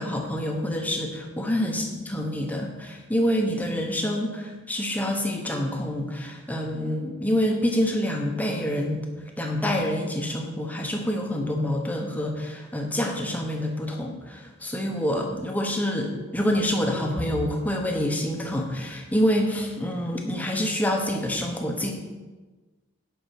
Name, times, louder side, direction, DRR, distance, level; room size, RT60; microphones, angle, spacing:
voice 1, 0.0-9.1 9.4-21.9, equal, 10° left, 1 dB, 1.1 m, -27 dB
9.9 x 6.0 x 6.0 m, 1.3 s
head